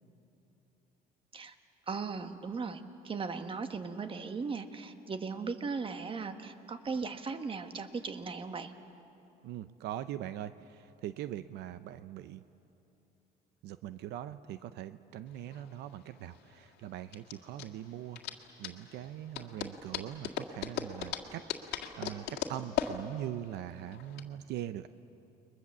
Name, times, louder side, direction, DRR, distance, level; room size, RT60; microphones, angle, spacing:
voice 1, 1.9-8.7, right 4 dB, 30° right, 8 dB, 1.5 m, -38 dB
voice 2, 9.4-12.4 13.6-18.2 18.6-24.9, right 12 dB, 80° right, 12 dB, 0.7 m, -42 dB
sound 1, 15.3-24.2, left 9 dB, 80° left, 1.9 m, -39 dB
29.5 x 22.0 x 7.4 m, 2.9 s
cardioid pair, 110°, 17 cm